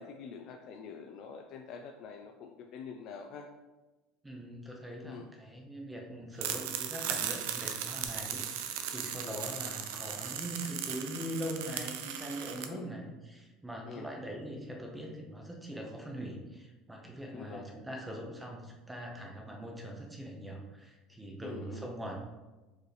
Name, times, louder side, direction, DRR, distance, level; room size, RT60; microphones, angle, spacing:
voice 1, 0.0-3.5 5.0-5.3 9.2-9.4 12.7-12.9 13.8-14.1 17.3-17.7 21.4-21.9, left 6 dB, 45° left, 3 dB, 0.3 m, -46 dB
voice 2, 4.2-22.2, right 1 dB, 5° right, 0 dB, 0.6 m, -42 dB
sound 1, 6.4-12.7, right 9 dB, 85° right, 0.4 m, -37 dB
4.6 x 3.1 x 3.2 m, 1.1 s
cardioid pair, 155°, 0 cm